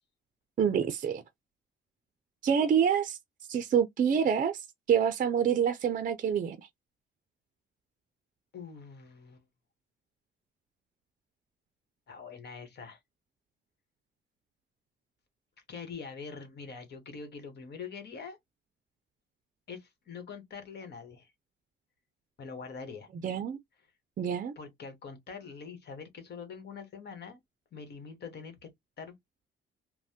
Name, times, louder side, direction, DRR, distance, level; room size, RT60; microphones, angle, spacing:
voice 1, 0.6-1.2 2.4-3.2 3.5-6.7 23.2-23.6 24.2-24.5, right 8 dB, 45° right, 0.5 m, -27 dB
voice 2, 8.5-9.4 12.1-13.0 15.7-18.4 19.7-21.3 22.4-23.1 24.6-27.4 27.7-28.7 29.0-29.1, left 5 dB, 55° left, 1.3 m, -44 dB
3.1 x 2.1 x 2.8 m
cardioid pair, 90°, 20 cm